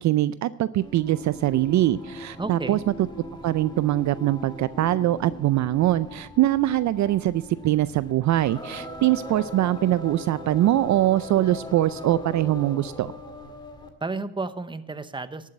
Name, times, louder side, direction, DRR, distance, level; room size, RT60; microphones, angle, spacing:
voice 1, 0.0-2.8 3.4-13.1, right 14 dB, 55° right, 16 dB, 0.4 m, -23 dB
Singing, 0.8-14.0, left 2 dB, 15° left, 1.9 m, -40 dB
voice 2, 2.4-2.8 14.0-15.5, right 3 dB, 15° right, 13 dB, 0.8 m, -32 dB
11.5 x 7.3 x 7.8 m, 0.88 s
cardioid pair, 90°, 35 cm